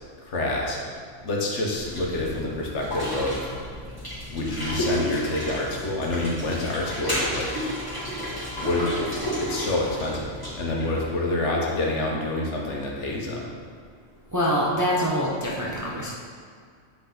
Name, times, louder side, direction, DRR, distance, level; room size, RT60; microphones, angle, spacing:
voice 1, 0.3-0.8 1.2-3.5 4.3-7.5 8.6-13.5, left 2 dB, 70° left, -2 dB, 1.2 m, -27 dB
sound 1, 1.8-11.0, equal, 15° left, 1.6 m, -32 dB
voice 2, 14.3-16.1, equal, 25° right, -4 dB, 0.4 m, -25 dB
7.9 x 3.3 x 3.8 m, 2.1 s
omnidirectional pair, 1.3 m